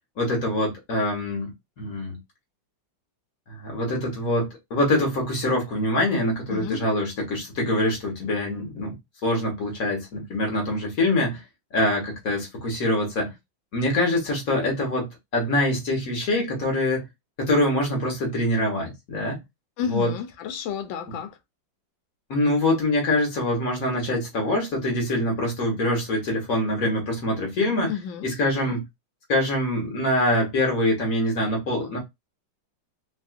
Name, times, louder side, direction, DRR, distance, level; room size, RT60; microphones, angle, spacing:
voice 1, 0.2-1.5 1.8-2.2 3.5-8.9 9.2-11.4 11.7-13.3 13.7-17.0 17.4-19.4 19.9-20.1 22.3-27.9 28.2-28.8 29.3-32.0, left 1 dB, 50° left, 1.6 m, -24 dB
voice 2, 6.5-6.9 19.8-21.4 27.9-28.8, left 8 dB, 85° left, 1.4 m, -32 dB
3.4 x 2.6 x 2.4 m
omnidirectional pair, 2.1 m